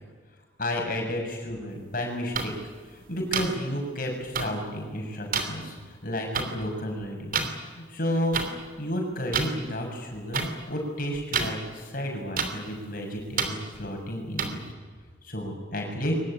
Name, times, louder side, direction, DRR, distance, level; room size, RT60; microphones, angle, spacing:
voice 1, 0.6-2.5 3.1-5.7 6.0-8.4 8.8-14.6 15.2-16.1, equal, 45° left, 2 dB, 6.6 m, -31 dB
sound 1, 2.3-2.5 3.3-3.5 4.3-4.5 5.3-5.4 6.3-6.4 7.3-7.5 8.3-8.5 9.3-9.5 10.3-10.5 11.3-11.5 12.4-12.5 13.4-13.5 14.4-14.5, right 6 dB, 45° right, 3.0 m, -26 dB
23.0 x 20.0 x 9.9 m, 1.5 s
head